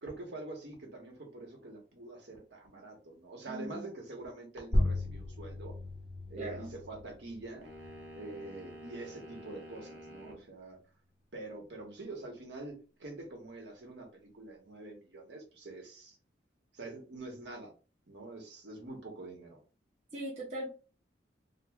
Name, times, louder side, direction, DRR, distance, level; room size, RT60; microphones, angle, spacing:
voice 1, 0.0-5.7 6.3-7.7 8.1-10.8 11.3-16.2 16.7-17.7 18.1-19.6, right 2 dB, 70° right, 2 dB, 1.0 m, -45 dB
voice 2, 3.5-3.9 6.4-6.7 20.1-20.7, right 1 dB, 35° right, -3 dB, 0.7 m, -39 dB
sound 1, 4.7-9.8, left 1 dB, 25° left, 0.7 m, -36 dB
sound 2, 7.6-10.4, equal, 85° right, 0.8 m, -49 dB
2.9 x 2.1 x 3.4 m, 0.34 s
head